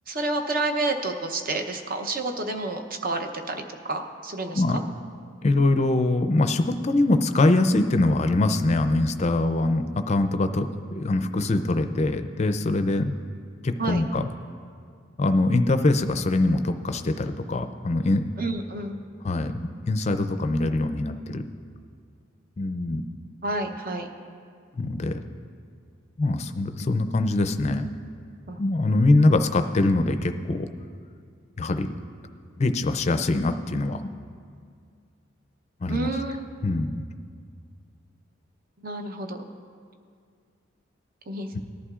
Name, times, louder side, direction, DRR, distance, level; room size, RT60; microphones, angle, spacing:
voice 1, 0.1-3.6 3.9-4.8 13.8-14.0 18.4-19.0 23.4-24.1 28.5-28.6 35.9-36.5 38.8-39.4 41.3-41.6, right 2 dB, 45° right, 5 dB, 0.7 m, -29 dB
voice 2, 5.4-13.2 13.6-14.2 15.2-18.3 19.2-21.4 22.6-23.0 24.7-25.2 26.2-27.9 28.6-30.7 31.6-31.9 32.6-34.1 35.8-36.1 36.6-37.0 41.5-41.6, left 2 dB, 35° left, 8 dB, 0.4 m, -23 dB
19.0 x 11.0 x 2.4 m, 2.2 s
head